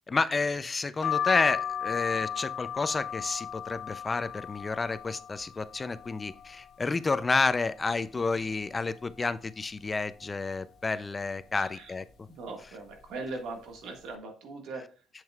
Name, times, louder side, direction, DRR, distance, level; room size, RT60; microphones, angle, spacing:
voice 1, 0.1-12.0, left 4 dB, 25° left, 14 dB, 0.4 m, -30 dB
sound 1, 1.0-6.7 7.1-7.9 8.3-8.4 8.6-9.7 10.2-10.6 11.3-11.7 12.4-12.7 12.9-13.1, left 9 dB, 60° left, 0.8 m, -36 dB
voice 2, 11.5-11.9 12.3-14.9, right 3 dB, 80° right, 3 dB, 1.7 m, -40 dB
7.5 x 7.4 x 2.4 m, 0.40 s
cardioid pair, 100°, 0 cm